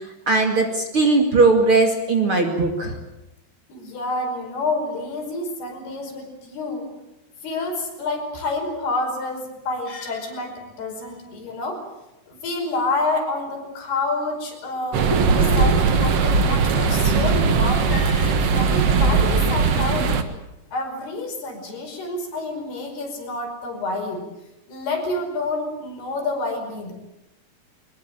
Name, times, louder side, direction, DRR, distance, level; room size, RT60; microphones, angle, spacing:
voice 1, 0.3-2.9 15.1-15.3 15.6-15.7, right 3 dB, 40° right, 3 dB, 2.7 m, -19 dB
voice 2, 3.7-6.9 7.4-11.8 12.3-15.1 15.3-20.2 20.7-24.2 24.7-26.9, left 2 dB, 75° left, 2 dB, 7.2 m, -28 dB
sound 1, 14.9-20.2, right 5 dB, 55° right, 2.0 m, -19 dB
23.0 x 21.0 x 9.0 m, 0.95 s
omnidirectional pair, 4.6 m